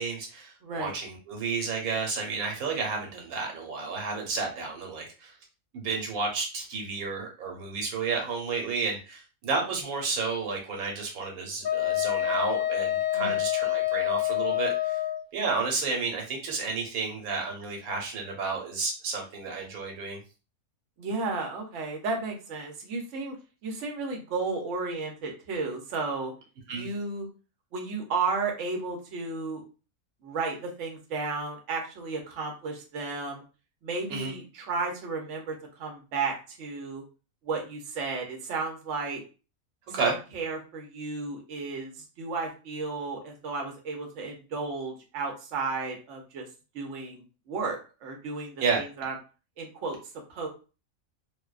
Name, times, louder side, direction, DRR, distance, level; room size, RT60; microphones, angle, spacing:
voice 1, 0.0-5.3 5.7-15.0 15.3-20.2 26.7-26.9 34.1-34.3 39.9-40.1 48.6-48.8, right 4 dB, 90° right, 1 dB, 1.2 m, -31 dB
voice 2, 0.6-0.9 13.1-13.4 21.0-23.4 23.6-26.3 26.7-27.3 27.7-29.6 30.2-33.4 33.8-37.0 37.4-39.2 39.9-46.4 46.7-49.1 49.6-50.0 50.3-50.5, right 4 dB, 65° right, 1 dB, 0.9 m, -33 dB
Wind instrument woodwind instrument, 11.6-15.2, left 14 dB, 75° left, 1.1 m, -27 dB
2.5 x 2.1 x 2.3 m, 0.33 s
omnidirectional pair, 1.5 m